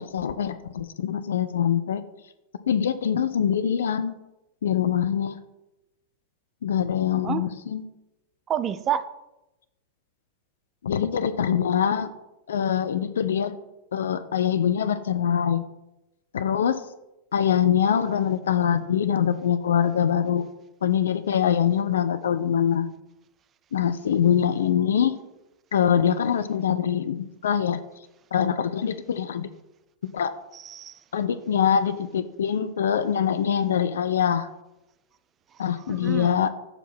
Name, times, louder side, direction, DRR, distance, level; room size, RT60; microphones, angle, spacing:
voice 1, 0.0-2.0 2.7-4.2 4.6-5.4 6.6-7.8 10.8-12.1 12.5-13.5 13.9-15.6 16.3-16.8 17.3-20.4 20.8-22.9 23.7-25.1 25.7-27.8 28.3-29.5 30.1-30.3 31.1-34.5 35.6-36.5, left 8 dB, 65° left, 11 dB, 0.4 m, -23 dB
voice 2, 7.1-7.5 8.5-9.1 30.5-31.0 35.9-36.4, right 9 dB, 25° right, 13 dB, 0.4 m, -29 dB
6.6 x 4.6 x 4.1 m, 0.94 s
figure-of-eight pair, 90°, 0 cm